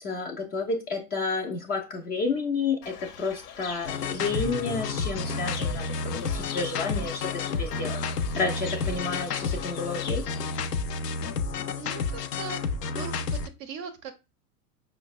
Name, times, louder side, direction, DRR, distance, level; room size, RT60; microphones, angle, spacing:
voice 1, 0.0-8.0 8.3-10.3, left 4 dB, 20° left, 0.4 m, -31 dB
Fowl / Bird, 2.8-10.7, left 6 dB, 65° left, 0.9 m, -41 dB
sound 1, 3.8-13.5, left 4 dB, 90° left, 0.5 m, -31 dB
voice 2, 11.7-12.6 13.0-14.1, right 6 dB, 30° right, 0.5 m, -39 dB
5.0 x 2.1 x 2.4 m
hypercardioid pair, 95°, 47 cm